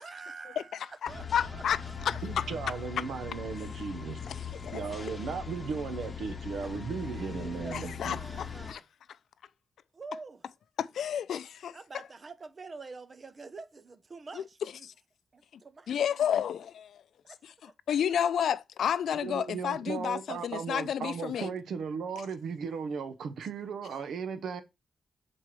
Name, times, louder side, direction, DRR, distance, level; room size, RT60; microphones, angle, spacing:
voice 1, 0.0-2.9 7.0-8.9 9.9-10.4 11.7-14.9 15.3-15.9 17.2-17.7, right 4 dB, 40° right, 0.8 m, -47 dB
voice 2, 1.0-1.8 2.1-2.4 4.3-4.4 4.6-4.8 7.7-8.8 10.8-11.8 14.4-14.5 15.9-17.0 17.9-21.5, left 9 dB, 85° left, 0.4 m, -31 dB
sound 1, 1.1-8.7, left 6 dB, 40° left, 1.0 m, -40 dB
voice 3, 2.2-4.2 4.7-8.2 19.2-24.6, right 6 dB, 85° right, 0.8 m, -36 dB
7.6 x 4.3 x 3.2 m
cardioid pair, 90°, 0 cm